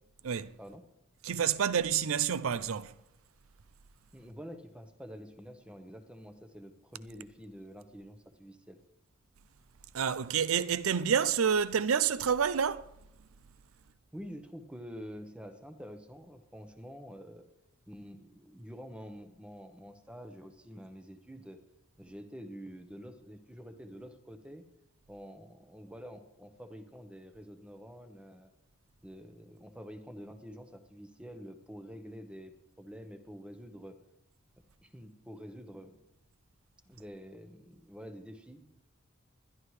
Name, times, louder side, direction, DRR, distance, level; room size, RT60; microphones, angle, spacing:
voice 1, 1.2-2.9 9.9-12.8, right 7 dB, 80° right, 0.5 m, -28 dB
voice 2, 4.1-8.8 14.1-17.4 17.9-21.6 22.0-24.6 25.1-28.5 29.0-34.0 34.8-36.0 36.9-38.7, equal, 5° right, 0.9 m, -47 dB
20.5 x 11.5 x 3.2 m
head